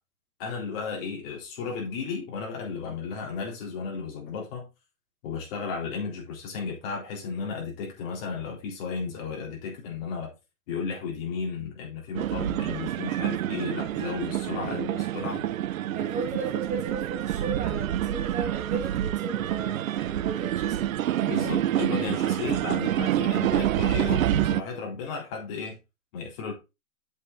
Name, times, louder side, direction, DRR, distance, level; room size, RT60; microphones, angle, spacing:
voice 1, 0.4-4.7 5.2-10.3 10.7-15.5 21.3-25.8 26.1-26.5, left 5 dB, 40° left, 3.9 m, -34 dB
sound 1, 12.2-24.6, right 12 dB, 60° right, 0.6 m, -27 dB
voice 2, 14.6-15.0 15.9-20.9, right 4 dB, 15° right, 2.7 m, -35 dB
8.1 x 7.4 x 2.6 m
hypercardioid pair, 155°, 45 cm